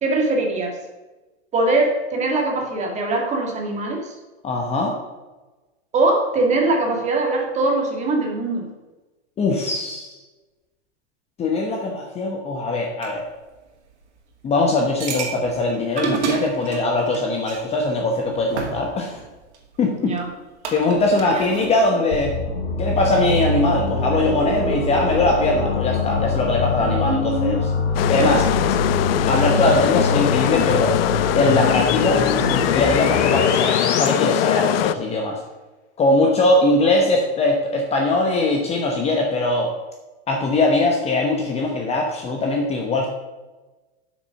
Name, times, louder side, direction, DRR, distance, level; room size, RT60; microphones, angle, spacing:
voice 1, 0.0-0.8 1.5-4.2 5.9-8.7 20.0-20.3 21.3-21.5 26.8-27.5, right 2 dB, 20° right, 1 dB, 1.8 m, -22 dB
voice 2, 4.4-4.9 9.4-10.1 11.4-13.3 14.4-19.2 19.8-20.2 20.7-22.3 22.8-27.6 28.1-28.5 29.3-30.9 31.4-35.4 36.0-39.7 40.3-43.1, left 2 dB, 20° left, 2 dB, 1.0 m, -21 dB
sound 1, 13.0-13.1 15.0-17.6 18.3-19.6 20.2-20.3 20.6-21.8, right 6 dB, 85° right, 2.1 m, -29 dB
sound 2, 22.1-34.1, left 3 dB, 85° left, 1.7 m, -24 dB
sound 3, 27.9-34.9, left 13 dB, 60° left, 0.5 m, -21 dB
7.8 x 6.2 x 5.8 m, 1.2 s
supercardioid pair, 145°, 33 cm